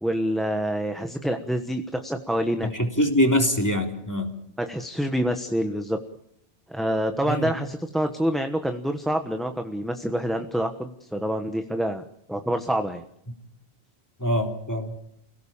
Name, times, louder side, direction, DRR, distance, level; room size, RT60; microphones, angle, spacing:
voice 1, 0.0-2.7 4.6-6.0 6.7-12.0 12.3-13.0, equal, ahead, 6 dB, 1.2 m, -27 dB
voice 2, 2.7-4.3 7.3-7.5 14.2-14.9, equal, 15° left, 3 dB, 3.5 m, -23 dB
29.5 x 17.0 x 7.3 m, 0.75 s
omnidirectional pair, 1.1 m